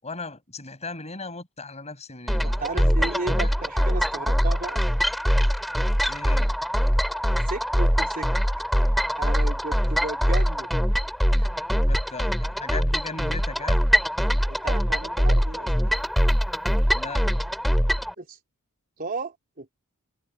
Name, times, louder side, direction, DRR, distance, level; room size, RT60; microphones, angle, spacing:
voice 1, 0.0-3.5 6.1-6.5 11.9-13.8 16.9-17.2, left 3 dB, 30° left, 6.9 m, -37 dB
sound 1, 2.3-18.1, equal, ahead, 3.2 m, -23 dB
voice 2, 2.6-4.8 7.5-8.3 9.2-10.7 11.3-11.5 14.5-15.9 18.2-18.4 19.0-19.7, right 3 dB, 40° right, 3.8 m, -34 dB
head